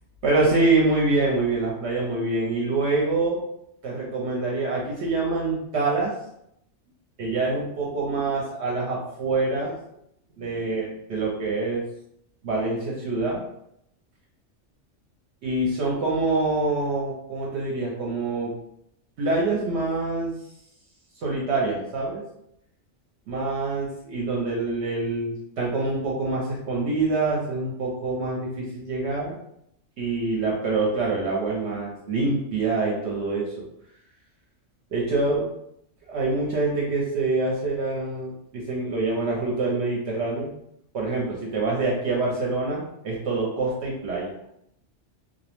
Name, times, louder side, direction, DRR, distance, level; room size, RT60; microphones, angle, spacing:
voice 1, 0.2-3.4 3.8-6.1 7.2-9.7 10.4-11.8 12.4-13.4 15.4-18.5 19.2-20.3 21.2-22.2 23.3-29.3 30.0-33.5 34.9-35.4 36.1-40.5 40.9-44.3, right 3 dB, 70° right, -4 dB, 0.8 m, -25 dB
2.4 x 2.0 x 2.9 m, 0.77 s
omnidirectional pair, 1.2 m